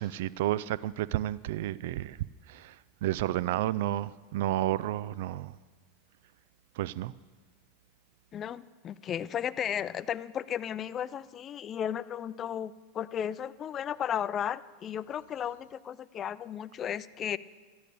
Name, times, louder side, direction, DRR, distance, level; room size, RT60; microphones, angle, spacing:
voice 1, 0.0-2.2 2.5-2.8 3.0-5.5 6.8-7.1, right 14 dB, 70° right, 20 dB, 0.3 m, -31 dB
voice 2, 8.3-17.4, left 9 dB, 35° left, 16 dB, 0.5 m, -34 dB
13.5 x 10.5 x 6.8 m, 1.4 s
hypercardioid pair, 95°, 0 cm